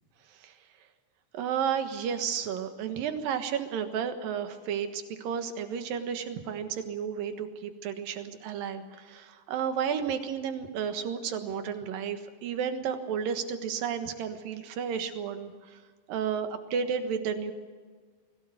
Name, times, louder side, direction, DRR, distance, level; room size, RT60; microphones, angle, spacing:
voice 1, 1.3-15.8 16.1-17.5, right 7 dB, 65° right, 8 dB, 3.0 m, -32 dB
22.5 x 17.0 x 7.9 m, 1.5 s
omnidirectional pair, 4.6 m